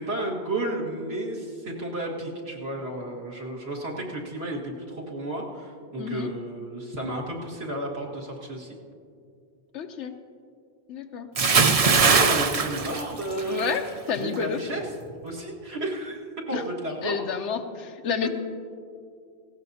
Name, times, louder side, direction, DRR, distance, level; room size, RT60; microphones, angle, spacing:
voice 1, 0.0-8.8 11.9-13.8 14.2-14.9 15.2-16.2 16.5-17.1, right 1 dB, 60° right, -4 dB, 2.1 m, -32 dB
voice 2, 6.0-6.3 9.7-10.1 10.9-11.3 13.5-14.6 16.5-16.6 17.0-18.3, left 6 dB, 90° left, 6 dB, 1.0 m, -30 dB
Bathtub (filling or washing) / Splash splatter, 11.3-13.8 14.1-14.4, right 4 dB, 40° right, 0.6 m, -21 dB
18.5 x 16.0 x 2.8 m, 2.4 s
omnidirectional pair, 1.2 m